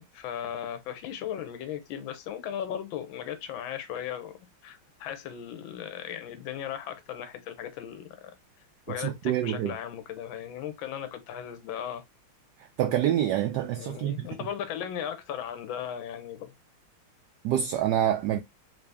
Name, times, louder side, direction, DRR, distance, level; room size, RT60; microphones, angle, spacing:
voice 1, 0.0-8.3 8.9-12.0 13.7-16.5, left 9 dB, 70° left, 1.4 m, -37 dB
voice 2, 9.0-9.7 12.8-14.3 17.4-18.4, right 11 dB, 75° right, 1.0 m, -26 dB
3.8 x 2.7 x 3.4 m
omnidirectional pair, 2.4 m